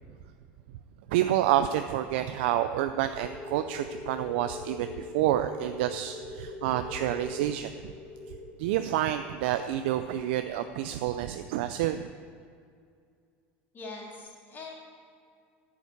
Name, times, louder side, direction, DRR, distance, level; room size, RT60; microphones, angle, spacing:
voice 1, 1.1-7.9 8.6-12.1, right 12 dB, 80° right, 8 dB, 0.4 m, -28 dB
sound 1, 3.2-11.5, left 3 dB, 70° left, 2.4 m, -43 dB
voice 2, 13.7-14.7, left 3 dB, 35° left, -2 dB, 3.1 m, -42 dB
10.0 x 7.2 x 8.1 m, 2.2 s
supercardioid pair, 105°, 6 cm